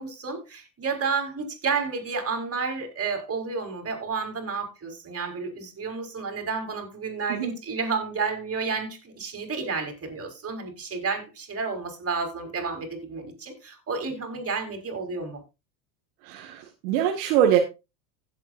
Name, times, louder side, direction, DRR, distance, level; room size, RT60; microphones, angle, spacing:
voice 1, 0.0-15.4, right 4 dB, 30° right, 4.7 m, -31 dB
voice 2, 16.2-17.6, right 10 dB, 70° right, 2.0 m, -23 dB
16.5 x 8.3 x 2.6 m
hypercardioid pair, 95°, 49 cm